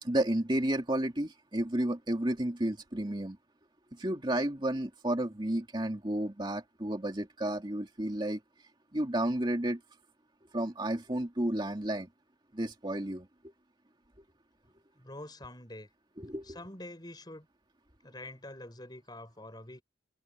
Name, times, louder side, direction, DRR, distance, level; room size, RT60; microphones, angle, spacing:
voice 1, 0.0-3.4 3.9-8.4 8.9-9.8 10.5-12.1 12.5-13.3 16.2-16.6, right 1 dB, 25° right, 2.5 m, -32 dB
voice 2, 15.0-15.9 16.5-17.5 18.0-19.8, left 1 dB, 20° left, 5.5 m, -46 dB
open air
head